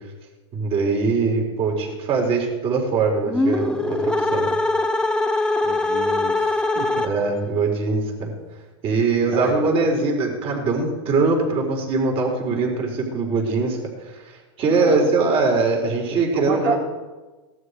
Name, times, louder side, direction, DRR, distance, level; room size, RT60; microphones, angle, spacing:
voice 1, 0.5-4.5 7.0-8.3 8.8-14.3 14.6-16.8, right 4 dB, 40° right, 0 dB, 4.5 m, -22 dB
sound 1, 3.3-7.5, left 2 dB, 5° left, 0.9 m, -22 dB
voice 2, 5.6-7.1 9.3-9.7 14.7-15.1 16.3-16.8, right 4 dB, 70° right, -2 dB, 3.1 m, -29 dB
17.5 x 12.5 x 4.9 m, 1.2 s
supercardioid pair, 130°, 15 cm